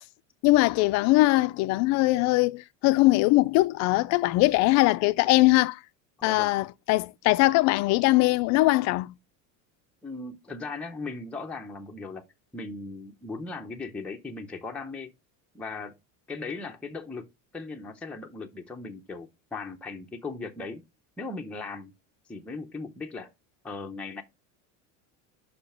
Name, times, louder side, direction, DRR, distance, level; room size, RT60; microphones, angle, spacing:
voice 1, 0.4-5.8 6.2-9.1, left 20 dB, 45° left, 0.5 m, -21 dB
voice 2, 6.2-6.6 10.0-12.3 12.5-15.1 15.5-16.0 16.3-17.3 17.5-20.8 21.2-21.9 22.3-23.3 23.6-24.2, left 3 dB, 5° left, 0.6 m, -38 dB
5.7 x 5.1 x 5.7 m
cardioid pair, 150°, 38 cm